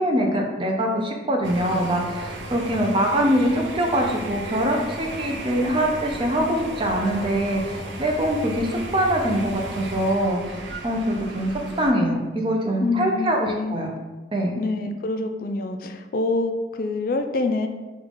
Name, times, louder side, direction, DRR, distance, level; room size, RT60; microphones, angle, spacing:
voice 1, 0.0-10.4 10.8-13.9 14.3-14.6, right 1 dB, 30° right, 1 dB, 0.5 m, -23 dB
sound 1, 1.4-11.9, right 2 dB, 80° right, 0.6 m, -35 dB
voice 2, 12.8-13.8 14.6-17.7, left 3 dB, 50° left, 6 dB, 0.4 m, -26 dB
5.3 x 2.4 x 3.6 m, 1.2 s
head